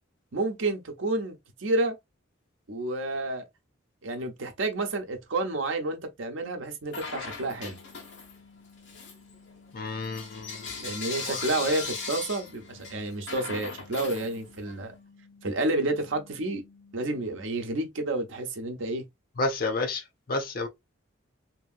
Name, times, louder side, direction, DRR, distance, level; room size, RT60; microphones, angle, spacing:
voice 1, 0.3-2.0 2.7-3.4 4.0-7.8 10.8-14.9 15.4-16.6 16.9-19.0, right 2 dB, 75° right, 0.7 m, -30 dB
Bell / Coin (dropping), 6.9-8.4 8.8-14.8, left 4 dB, 60° left, 1.3 m, -38 dB
sound 1, 7.4-17.4, left 4 dB, 20° left, 1.2 m, -56 dB
voice 2, 9.7-10.7 11.3-11.5 19.4-20.0 20.3-20.7, left 2 dB, 45° left, 0.5 m, -30 dB
2.9 x 2.7 x 2.3 m
head